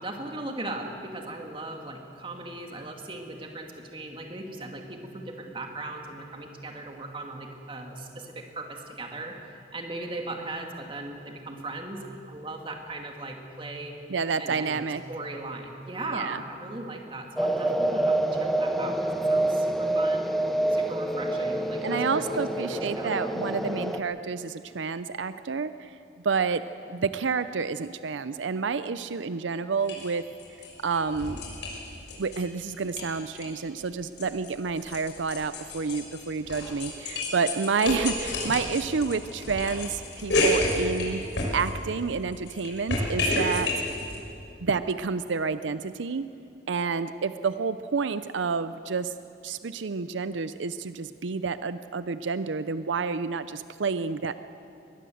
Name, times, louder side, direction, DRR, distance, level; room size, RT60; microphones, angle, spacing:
voice 1, 0.0-14.0 14.4-20.3 20.7-23.2, right 2 dB, 30° right, 2 dB, 2.3 m, -38 dB
voice 2, 14.1-15.0 16.1-16.4 21.8-26.0 26.2-26.6 26.9-30.2 30.8-31.4 32.2-41.2 41.5-43.7 44.6-46.2 46.7-49.1 49.4-54.3, right 5 dB, 85° right, 12 dB, 0.6 m, -29 dB
sound 1, 17.4-24.0, right 1 dB, ahead, 0.9 m, -27 dB
sound 2, 29.8-30.1 30.4-32.4 32.7-33.5 33.8-42.0 42.3-44.2, left 1 dB, 75° left, 6.1 m, -30 dB
21.5 x 20.0 x 7.8 m, 2.6 s
head